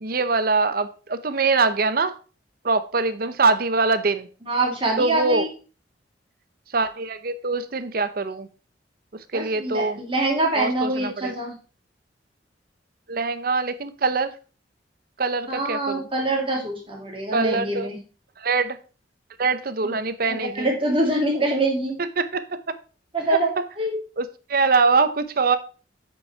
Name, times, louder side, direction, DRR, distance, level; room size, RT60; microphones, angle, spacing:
voice 1, 0.0-2.1 2.6-4.3 5.0-5.5 6.7-8.5 9.3-10.0 10.6-11.3 13.1-14.3 15.2-16.0 17.3-17.9 18.4-18.8 19.4-20.7 22.2-22.7 23.3-23.4 24.2-25.6, right 4 dB, 55° right, 12 dB, 0.8 m, -23 dB
voice 2, 4.4-5.5 9.3-11.5 15.5-18.0 19.8-19.9 20.3-22.0 23.1-23.5 23.8-24.0, right 2 dB, 30° right, -1 dB, 2.8 m, -24 dB
8.4 x 5.5 x 4.5 m, 0.36 s
head